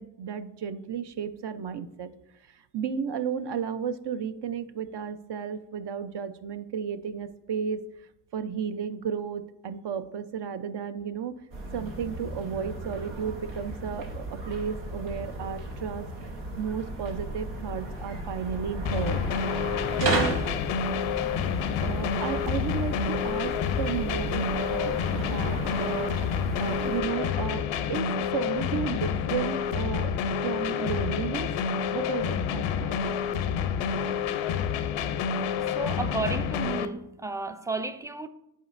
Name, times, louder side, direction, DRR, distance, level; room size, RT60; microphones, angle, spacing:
voice 1, 0.0-2.1 2.5-11.4 11.7-16.1 16.6-19.2 20.0-20.4 21.8-30.1 30.4-31.6 31.9-33.2, right 7 dB, 60° right, 0.6 m, -33 dB
sound 1, 11.5-27.0, right 1 dB, 90° right, 1.0 m, -35 dB
sound 2, 18.9-36.9, left 7 dB, 85° left, 0.6 m, -29 dB
sound 3, 23.7-28.9, right 4 dB, 35° right, 1.1 m, -49 dB
voice 2, 35.7-38.3, right 3 dB, 5° right, 0.4 m, -32 dB
10.0 x 4.3 x 2.5 m
supercardioid pair, 45°, 47 cm